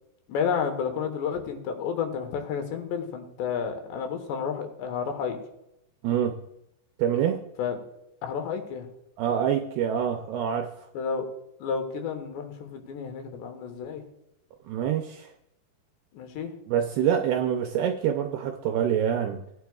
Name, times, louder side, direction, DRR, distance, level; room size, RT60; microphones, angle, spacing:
voice 1, 0.3-5.4 7.6-7.8 8.2-8.9 10.9-11.3 11.6-14.0 16.1-16.5, left 6 dB, 75° left, 5 dB, 3.2 m, -31 dB
voice 2, 6.0-6.4 7.0-7.4 9.2-10.7 14.7-15.3 16.7-19.4, right 9 dB, 80° right, 4 dB, 2.4 m, -26 dB
18.0 x 9.4 x 2.3 m, 0.81 s
omnidirectional pair, 5.3 m